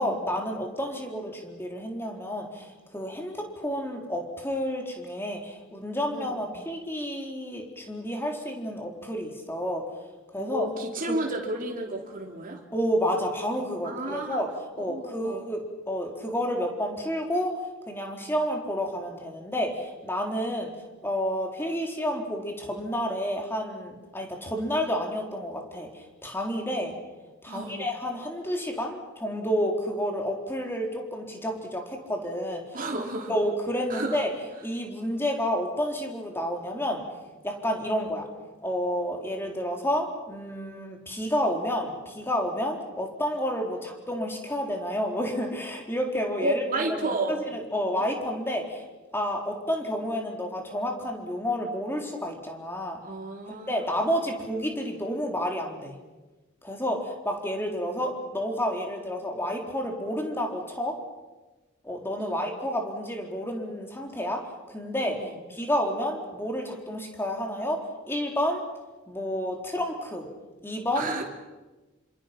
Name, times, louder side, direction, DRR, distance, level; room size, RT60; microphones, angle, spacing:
voice 1, 0.0-9.8 10.3-10.7 11.1-11.2 12.7-14.5 14.8-17.6 17.9-20.7 21.0-27.0 27.4-32.6 33.3-34.3 34.6-37.0 37.4-38.3 38.6-48.8 49.1-53.0 53.7-55.9 56.6-60.9 61.8-64.4 64.7-65.2 65.5-67.8 68.1-68.6 69.1-70.3 70.6-71.2, equal, 10° left, 1 dB, 4.0 m, -30 dB
voice 2, 6.1-6.5 10.4-12.6 13.8-14.4 14.9-15.4 27.5-27.9 32.7-33.3 33.9-34.2 46.4-47.4 53.0-54.1 62.2-62.5 65.1-65.4 70.9-71.2, right 2 dB, 40° right, 0 dB, 3.5 m, -32 dB
27.5 x 26.0 x 6.0 m, 1.2 s
head